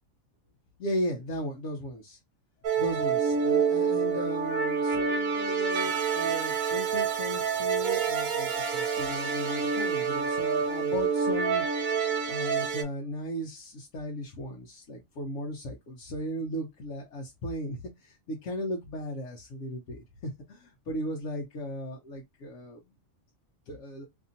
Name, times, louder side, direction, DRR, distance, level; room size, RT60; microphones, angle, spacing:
voice 1, 0.8-2.2 2.8-12.0 12.3-22.8 23.7-24.0, equal, 70° left, 1.0 m, -36 dB
sound 1, 2.6-12.8, right 6 dB, 85° right, 1.1 m, -28 dB
Percussion / Church bell, 5.8-10.8, right 8 dB, 65° right, 1.0 m, -38 dB
2.9 x 2.6 x 2.5 m
omnidirectional pair, 1.4 m